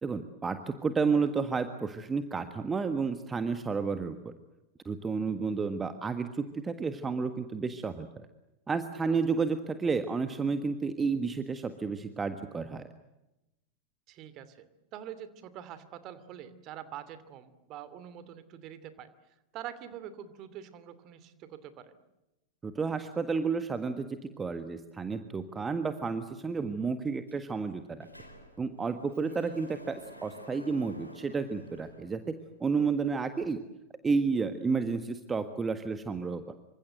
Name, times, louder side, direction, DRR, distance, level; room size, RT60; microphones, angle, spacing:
voice 1, 0.0-4.3 4.8-8.3 8.7-12.8 22.6-28.1 28.6-32.2 32.6-33.6 34.0-36.5, right 5 dB, 15° right, 10 dB, 1.6 m, -31 dB
voice 2, 14.1-19.1 19.5-21.9 29.3-29.4, right 10 dB, 35° right, 14 dB, 2.8 m, -45 dB
Sliding door, 27.3-27.4 27.7-32.7, left 1 dB, 90° left, 4.0 m, -51 dB
27.5 x 25.5 x 7.8 m, 0.95 s
figure-of-eight pair, 90°, 0 cm